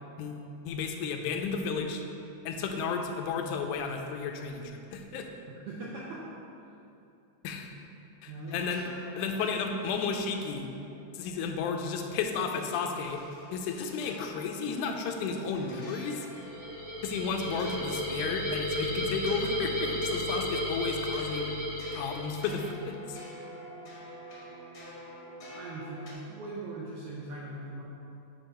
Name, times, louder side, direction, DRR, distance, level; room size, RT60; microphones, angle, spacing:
voice 1, 0.2-2.0 2.5-5.3 7.4-7.7 8.2-8.9 9.2-10.7 11.1-16.3 17.0-21.5 21.9-23.2, left 5 dB, 90° left, 4 dB, 2.1 m, -33 dB
voice 2, 5.5-6.3 8.3-8.5 25.5-27.8, right 2 dB, 80° right, -5 dB, 1.3 m, -40 dB
sound 1, 8.4-26.1, equal, 60° left, 0.9 m, -49 dB
sound 2, 16.3-22.7, left 1 dB, 45° right, 0.4 m, -33 dB
8.7 x 2.9 x 5.5 m, 2.7 s
omnidirectional pair, 3.5 m